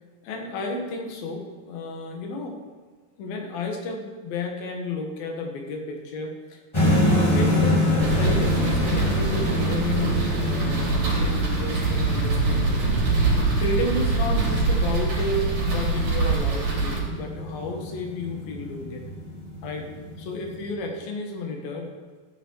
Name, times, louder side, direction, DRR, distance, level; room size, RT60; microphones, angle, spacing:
voice 1, 0.2-2.6 3.2-6.6 7.0-12.9 13.6-19.0 19.6-19.9 20.2-21.9, left 2 dB, 90° left, 2 dB, 3.5 m, -32 dB
sound 1, 6.7-20.7, left 1 dB, 15° left, 1.3 m, -27 dB
sound 2, 8.0-17.0, right 3 dB, 80° right, 5.2 m, -24 dB
14.5 x 9.7 x 4.7 m, 1.5 s
omnidirectional pair, 4.0 m